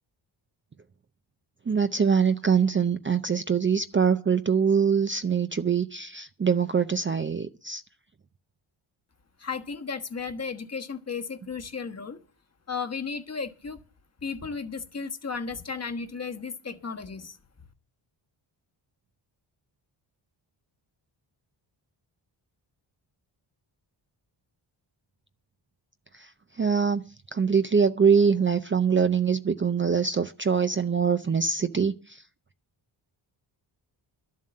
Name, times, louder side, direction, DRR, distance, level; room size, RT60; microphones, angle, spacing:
voice 1, 1.7-7.8 26.1-27.0 27.3-32.2, right 6 dB, 25° right, 0.5 m, -24 dB
voice 2, 9.4-12.2 12.7-13.8 14.2-17.4, left 5 dB, 30° left, 1.3 m, -34 dB
12.5 x 7.5 x 7.6 m
wide cardioid pair, 115°, 48 cm